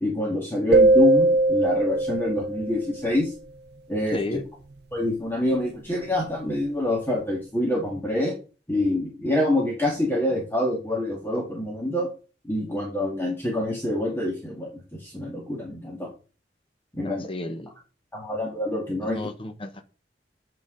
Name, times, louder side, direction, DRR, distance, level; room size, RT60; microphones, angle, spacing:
voice 1, 0.0-3.3 3.9-4.2 4.9-8.3 8.7-12.1 12.4-14.7 15.0-16.1 16.9-17.3 18.1-19.2, left 1 dB, 15° left, 1.8 m, -26 dB
sound 1, 0.7-3.0, right 2 dB, 65° right, 0.6 m, -20 dB
voice 2, 17.0-17.7 19.2-19.8, left 2 dB, 30° left, 0.9 m, -32 dB
8.8 x 5.8 x 3.8 m
head